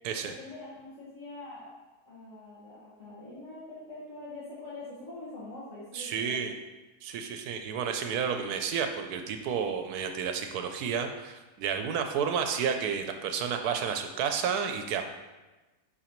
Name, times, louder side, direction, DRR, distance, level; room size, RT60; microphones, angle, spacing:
voice 1, 0.2-1.7 2.0-6.5, left 2 dB, 55° left, -9 dB, 2.0 m, -44 dB
voice 2, 5.9-6.5 7.0-15.1, right 7 dB, 80° right, 6 dB, 1.1 m, -31 dB
10.5 x 4.2 x 3.0 m, 1.1 s
omnidirectional pair, 1.6 m